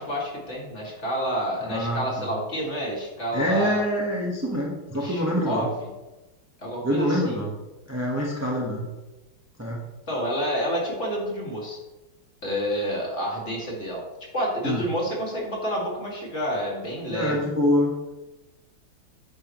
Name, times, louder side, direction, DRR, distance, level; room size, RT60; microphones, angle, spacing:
voice 1, 0.0-3.8 4.9-5.7 6.6-7.4 10.1-11.8 12.4-14.0 14.3-17.5, equal, 30° left, -3 dB, 2.7 m, -29 dB
voice 2, 1.6-2.3 3.3-5.7 6.8-7.5 7.9-8.9 9.6-9.8 14.6-14.8 17.1-18.1, equal, 10° right, -3 dB, 1.1 m, -25 dB
9.7 x 9.7 x 3.2 m, 1.1 s
omnidirectional pair, 2.3 m